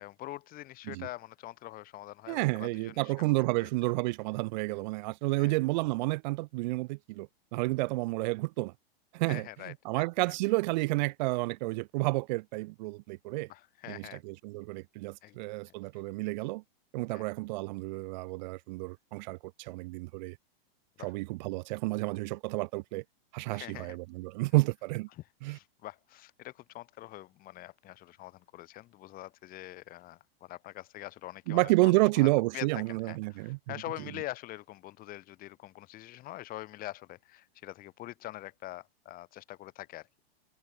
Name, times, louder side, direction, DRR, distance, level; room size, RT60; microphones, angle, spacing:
voice 1, 0.0-3.1 3.6-3.7 5.4-5.5 9.3-10.3 13.5-14.2 15.2-15.5 17.1-17.2 21.0-21.1 23.5-24.0 25.1-32.3 32.5-40.1, left 16 dB, 30° left, 5.1 m, -44 dB
voice 2, 2.3-8.7 9.1-13.5 13.9-16.6 16.9-20.4 21.0-23.0 23.3-25.1 25.4-25.6 31.5-33.6, right 22 dB, 45° right, 4.2 m, -30 dB
hypercardioid pair, 150°, 31 cm